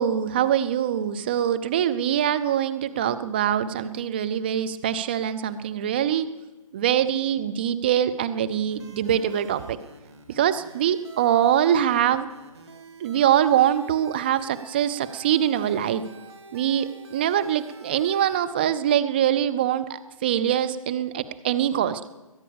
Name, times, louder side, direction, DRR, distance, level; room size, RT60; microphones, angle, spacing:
voice 1, 0.0-6.3 6.7-9.8 10.4-12.3 13.0-16.0 16.5-22.0, right 10 dB, 15° right, 11 dB, 0.5 m, -23 dB
sound 1, 8.7-18.4, right 4 dB, 45° right, 2.9 m, -48 dB
22.0 x 9.5 x 7.0 m, 1.1 s
figure-of-eight pair, 155°, 19 cm